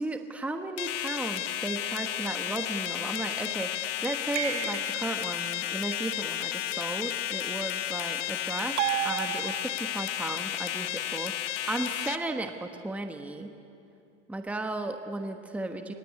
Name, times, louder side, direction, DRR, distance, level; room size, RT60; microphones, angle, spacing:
voice 1, 0.0-11.3 11.7-13.6 14.3-15.9, right 2 dB, 5° right, 5 dB, 1.1 m, -35 dB
sound 1, 0.8-12.2, left 13 dB, 80° left, 1.3 m, -33 dB
sound 2, 4.3-5.3 8.8-10.0, right 14 dB, 75° right, 1.2 m, -32 dB
24.5 x 20.0 x 9.5 m, 2.6 s
supercardioid pair, 135°, 36 cm